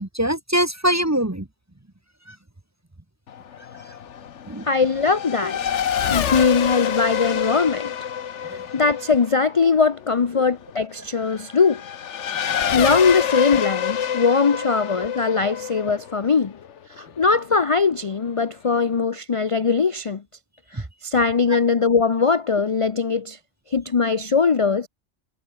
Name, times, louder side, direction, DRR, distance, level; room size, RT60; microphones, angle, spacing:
voice 1, 0.0-1.5 2.3-2.4 4.5-4.6 14.6-14.7 21.5-21.6, right 1 dB, 15° right, 1.1 m, -23 dB
Race car auto racing / Accelerating revving vroom, 3.3-17.4, left 8 dB, 80° left, 1.3 m, -27 dB
voice 2, 4.6-5.6 6.1-7.9 8.7-11.8 12.7-16.5 17.0-20.2 20.7-23.4 23.7-24.9, left 5 dB, 35° left, 0.6 m, -20 dB
omnidirectional pair, 1.2 m